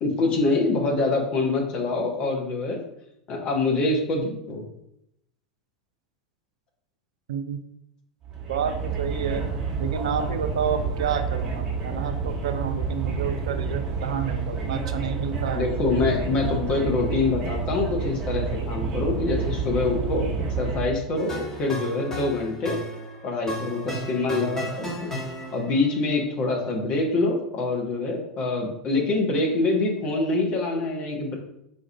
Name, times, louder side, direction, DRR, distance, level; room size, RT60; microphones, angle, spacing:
voice 1, 0.0-2.8 3.3-4.6 15.5-22.8 23.2-25.1 25.5-31.4, left 3 dB, 40° left, 1 dB, 0.9 m, -25 dB
sound 1, 8.2-20.9, right 4 dB, 30° right, 0.9 m, -29 dB
voice 2, 8.5-9.5 9.8-15.7, right 7 dB, 65° right, 9 dB, 0.3 m, -29 dB
sound 2, 21.2-25.9, equal, 15° left, 1.3 m, -34 dB
4.1 x 2.4 x 3.2 m, 0.78 s
figure-of-eight pair, 80°, 3 cm